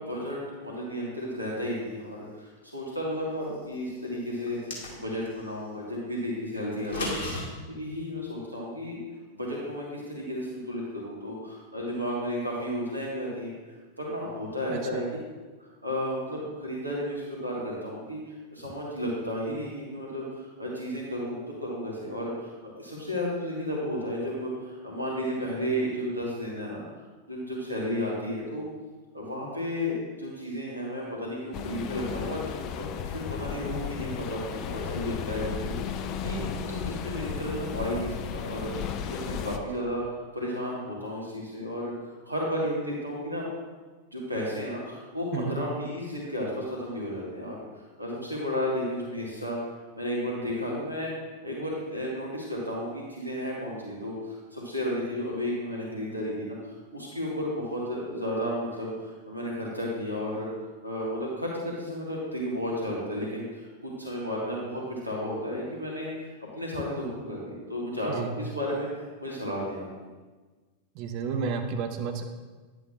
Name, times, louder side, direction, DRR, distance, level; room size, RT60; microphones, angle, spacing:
voice 1, 0.0-4.6 4.9-7.2 7.7-9.0 9.3-13.5 14.0-15.1 15.6-26.8 27.3-28.6 29.1-38.7 39.1-40.0 40.3-41.9 42.2-43.5 44.1-49.6 49.9-51.1 51.4-60.5 60.8-69.9, equal, 85° right, -4 dB, 1.5 m, -33 dB
sound 1, 4.4-5.3 6.7-7.4, left 2 dB, 60° left, 1.9 m, -33 dB
voice 2, 14.7-15.0 45.3-45.5 68.1-68.3 71.0-72.2, right 6 dB, 45° right, 6 dB, 0.8 m, -31 dB
sound 2, 31.5-39.6, left 7 dB, 40° left, 0.5 m, -34 dB
9.9 x 7.8 x 2.4 m, 1.3 s
figure-of-eight pair, 90°, 0 cm